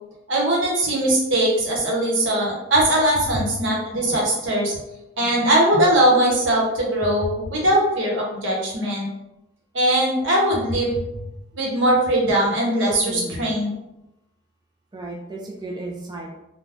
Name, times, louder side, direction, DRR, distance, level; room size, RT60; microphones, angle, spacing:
voice 1, 0.3-4.8 5.2-9.1 9.7-11.0 11.6-13.7, right 1 dB, 85° right, -3 dB, 0.9 m, -20 dB
voice 2, 13.0-13.5 14.9-16.3, right 2 dB, 20° right, -1 dB, 0.4 m, -33 dB
3.3 x 2.2 x 2.5 m, 0.92 s
head